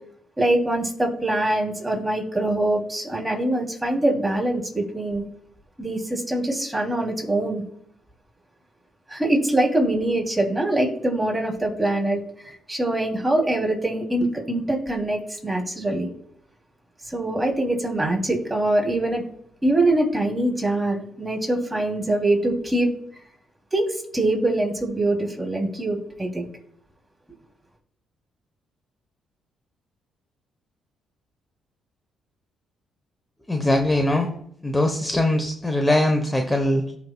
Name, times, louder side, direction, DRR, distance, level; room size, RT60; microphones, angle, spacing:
voice 1, 0.4-5.2 5.8-7.6 9.1-16.1 17.1-19.2 19.6-22.9 23.7-26.5, right 1 dB, 10° right, 0 dB, 3.2 m, -23 dB
voice 2, 33.5-34.3 34.6-36.9, left 1 dB, 10° left, 4 dB, 1.1 m, -21 dB
17.0 x 6.0 x 2.4 m, 0.67 s
cardioid pair, 90°, 0 cm